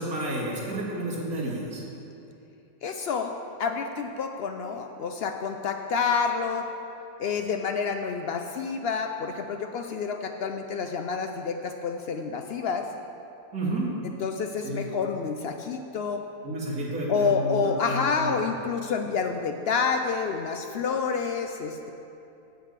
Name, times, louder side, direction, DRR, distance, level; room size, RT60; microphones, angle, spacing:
voice 1, 0.0-1.8 13.5-13.9 14.6-14.8 16.4-18.3, right 1 dB, 80° right, -5 dB, 2.6 m, -31 dB
voice 2, 2.8-3.3 3.6-6.7 7.2-12.9 14.2-16.2 17.1-21.9, left 5 dB, 75° left, 5 dB, 0.5 m, -28 dB
8.3 x 7.9 x 6.6 m, 2.8 s
omnidirectional pair, 1.6 m